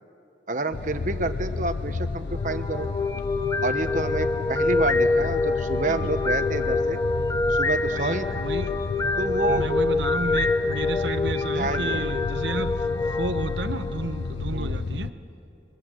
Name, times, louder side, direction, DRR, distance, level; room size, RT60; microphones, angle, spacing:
voice 1, 0.5-2.9 3.6-7.0 7.4-8.5 9.2-9.7 11.5-12.2 14.5-14.8, right 2 dB, 45° right, 8 dB, 1.1 m, -29 dB
sound 1, 0.7-15.1, left 4 dB, 80° left, 0.5 m, -32 dB
sound 2, 2.3-14.4, left 3 dB, 20° left, 0.8 m, -26 dB
voice 2, 7.9-8.7 9.5-15.2, right 3 dB, 80° right, 9 dB, 1.1 m, -32 dB
30.0 x 21.5 x 7.7 m, 2.6 s
head